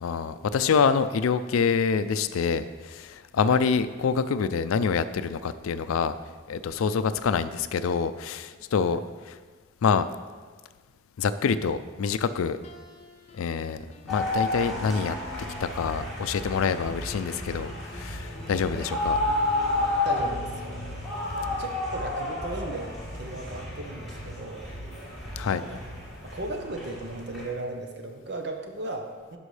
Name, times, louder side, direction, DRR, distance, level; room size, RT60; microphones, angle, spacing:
voice 1, 0.0-6.1 6.5-9.0 9.3-9.4 9.8-10.1 11.2-12.6 13.3-13.8 14.0-15.2 15.6-19.2 25.4-25.6, left 6 dB, 90° left, 13 dB, 0.4 m, -26 dB
sound 1, 12.6-16.1 17.1-20.9, left 2 dB, 30° left, 0.5 m, -47 dB
sound 2, 14.1-27.5, left 2 dB, ahead, 2.1 m, -31 dB
voice 2, 19.8-20.8 21.5-24.7 25.5-25.8 26.2-29.4, right 2 dB, 55° right, 3 dB, 0.8 m, -36 dB
11.5 x 5.4 x 3.3 m, 1.5 s
head